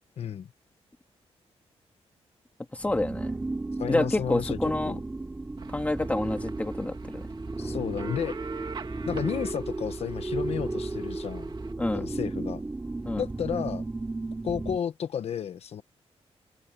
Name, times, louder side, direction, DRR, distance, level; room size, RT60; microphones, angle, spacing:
voice 1, 0.2-0.5 3.8-4.6 4.8-5.0 7.6-8.4 9.0-11.5 11.9-12.6 13.2-13.8 14.4-15.8, left 8 dB, 65° left, 1.1 m, -32 dB
voice 2, 2.7-3.3 3.9-4.9 5.7-7.2 11.8-12.0 13.0-13.2, left 2 dB, 10° left, 1.8 m, -28 dB
sound 1, 2.8-14.8, right 2 dB, 15° right, 3.2 m, -34 dB
sound 2, 5.6-11.7, right 5 dB, 45° right, 2.4 m, -43 dB
wide cardioid pair, 140°, 11 cm